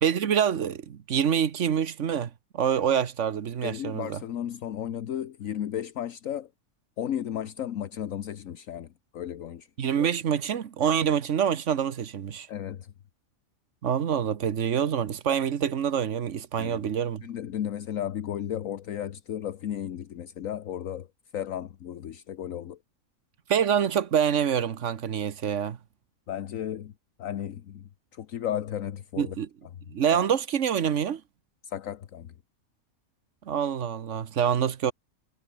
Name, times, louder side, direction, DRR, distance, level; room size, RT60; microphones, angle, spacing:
voice 1, 0.0-4.2 9.8-12.5 13.8-17.2 23.5-25.8 29.2-29.5 29.9-31.2 33.5-34.9, right 8 dB, 60° right, 1.4 m, -26 dB
voice 2, 3.6-6.5 7.0-9.7 12.5-12.9 16.6-16.8 17.2-21.1 21.3-22.8 26.3-26.9 27.2-29.3 31.6-32.3, left 10 dB, 70° left, 1.3 m, -34 dB
omnidirectional pair, 1.5 m